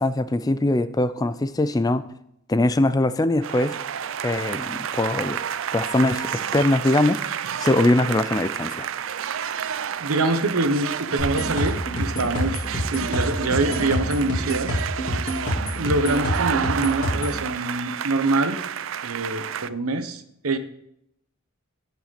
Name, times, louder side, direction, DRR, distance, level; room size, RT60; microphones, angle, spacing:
voice 1, 0.0-2.1 2.5-5.4 5.7-7.3 7.6-8.9, left 2 dB, 15° left, 13 dB, 0.4 m, -22 dB
sound 1, 3.4-19.7, right 8 dB, 65° right, 0.4 m, -30 dB
voice 2, 10.0-12.7 12.9-14.7 15.8-18.6 19.0-20.6, right 2 dB, 85° right, 10 dB, 1.0 m, -25 dB
sound 2, 11.2-17.4, equal, 35° left, 3.4 m, -27 dB
17.0 x 5.9 x 4.1 m, 0.76 s
head